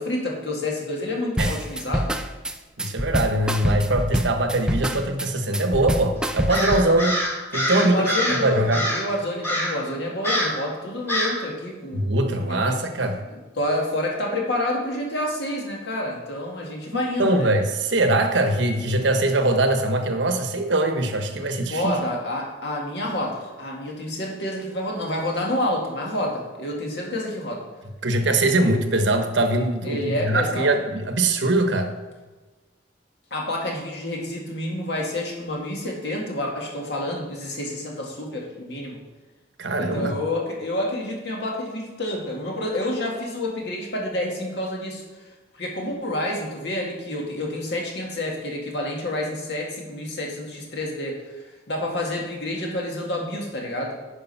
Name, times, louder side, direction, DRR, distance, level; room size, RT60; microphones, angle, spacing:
voice 1, 0.0-2.1 7.7-12.6 13.3-17.5 21.7-27.6 29.8-30.7 33.3-39.0 39.8-45.0 45.5-54.0, left 1 dB, 60° left, -1 dB, 2.1 m, -28 dB
sound 1, 1.4-6.9, right 1 dB, 5° right, 0.4 m, -26 dB
voice 2, 2.8-7.2 7.5-8.1 8.4-8.8 11.9-13.2 16.9-21.9 28.0-31.9 39.6-40.2, right 2 dB, 70° right, 6 dB, 1.1 m, -22 dB
Crow, 6.5-8.4 8.7-9.1 9.4-9.8 10.2-10.6 11.1-11.4, equal, 15° left, 1.6 m, -25 dB
10.0 x 5.1 x 5.6 m, 1.2 s
head